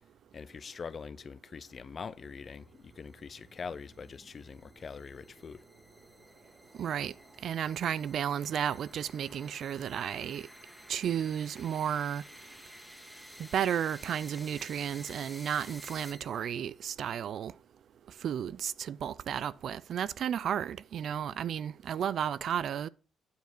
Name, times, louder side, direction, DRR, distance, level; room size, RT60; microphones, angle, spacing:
voice 1, 0.3-5.7, left 5 dB, 40° left, 0.6 m, -43 dB
sound 1, 2.0-16.6, equal, ahead, 1.6 m, -53 dB
voice 2, 6.8-7.1 7.4-10.5 10.9-12.2 13.4-17.5 18.2-22.9, right 9 dB, 65° right, 0.4 m, -33 dB
9.4 x 4.9 x 6.0 m
cardioid pair, 90°, 0 cm